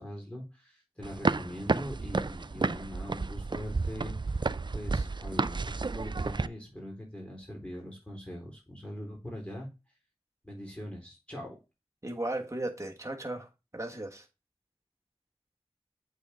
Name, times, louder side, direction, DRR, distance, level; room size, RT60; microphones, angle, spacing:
voice 1, 0.0-4.4 4.7-9.7 10.4-11.6, equal, 10° left, 4.0 m, -42 dB
sound 1, 1.0-6.5, right 3 dB, 50° right, 0.4 m, -31 dB
voice 2, 12.0-14.3, right 1 dB, 30° right, 1.5 m, -36 dB
8.2 x 3.8 x 3.6 m
wide cardioid pair, 45°, 10 cm